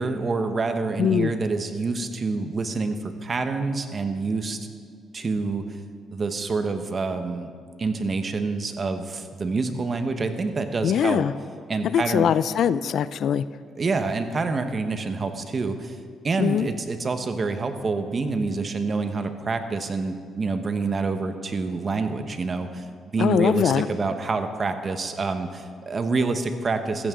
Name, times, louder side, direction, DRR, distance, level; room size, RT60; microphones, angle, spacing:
voice 1, 0.0-4.6 5.1-5.8 6.1-7.5 7.8-11.2 11.7-12.3 13.8-16.0 16.2-22.8 23.1-27.1, right 3 dB, 40° right, 7 dB, 1.2 m, -27 dB
voice 2, 1.0-1.3 10.8-11.3 11.8-13.4 16.4-16.7 23.2-23.9, left 9 dB, 70° left, 15 dB, 0.4 m, -22 dB
15.0 x 14.5 x 3.8 m, 2.1 s
cardioid pair, 90°, 0 cm